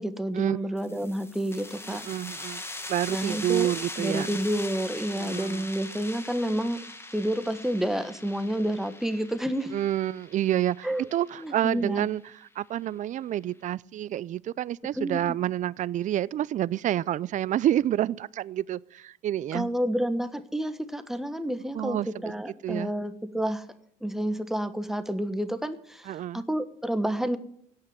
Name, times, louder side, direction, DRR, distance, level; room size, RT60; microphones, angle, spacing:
voice 1, 0.0-2.1 3.1-3.7 4.0-6.8 7.1-9.7 10.8-11.1 11.4-12.1 15.0-15.4 19.5-23.6 24.0-27.4, equal, ahead, 1.3 m, -29 dB
sound 1, 0.8-12.1, left 2 dB, 15° left, 1.8 m, -41 dB
voice 2, 1.9-2.6 2.9-4.4 5.2-5.6 9.7-19.7 21.7-22.3 22.6-22.9 26.1-26.4, right 12 dB, 50° right, 0.5 m, -28 dB
17.0 x 5.7 x 9.5 m
supercardioid pair, 75°, 17 cm